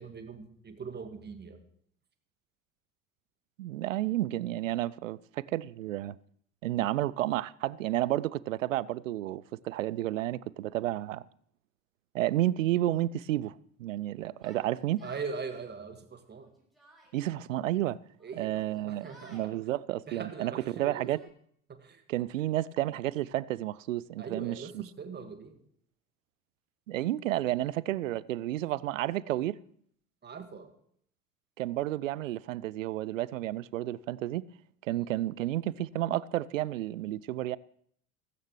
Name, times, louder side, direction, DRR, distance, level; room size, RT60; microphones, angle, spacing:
voice 1, 0.0-1.6 15.0-16.5 18.2-19.5 20.1-21.1 21.7-22.0 24.2-25.6 30.2-30.7 34.9-35.0, right 5 dB, 25° right, 1.9 m, -41 dB
voice 2, 3.6-6.2 6.6-11.2 12.1-13.5 13.8-15.0 17.1-18.0 18.4-21.2 22.1-24.8 26.9-29.6 31.6-34.5 34.8-37.6, right 14 dB, 70° right, 0.5 m, -31 dB
Yell, 14.4-15.3 16.2-17.2 18.2-19.5 20.4-21.3, right 2 dB, ahead, 6.6 m, -58 dB
16.5 x 15.5 x 3.2 m
figure-of-eight pair, 65°, 41 cm